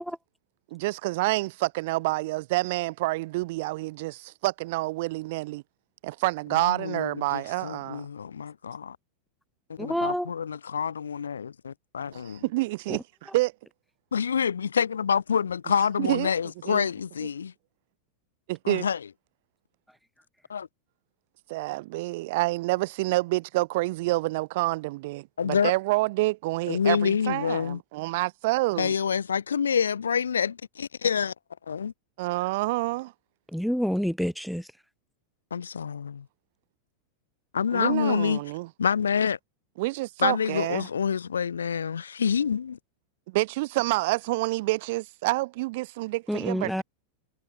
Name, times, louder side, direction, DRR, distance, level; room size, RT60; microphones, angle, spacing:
voice 1, 0.7-5.6 6.0-8.1 12.1-13.5 16.0-16.3 16.7-16.9 18.5-18.9 21.5-28.9 32.2-33.1 37.7-38.7 39.8-40.9 43.3-46.8, right 21 dB, 50° right, 0.7 m, -28 dB
voice 2, 6.5-9.0 9.7-12.4 14.1-17.5 18.6-19.1 20.5-20.7 25.4-25.7 26.7-27.8 28.8-31.3 31.7-31.9 35.5-36.3 37.5-38.4 38.8-39.4 40.2-42.8, left 7 dB, 70° left, 3.4 m, -27 dB
voice 3, 9.8-10.3 33.5-34.6 46.3-46.8, equal, ahead, 0.8 m, -27 dB
figure-of-eight pair, 90°, 0 cm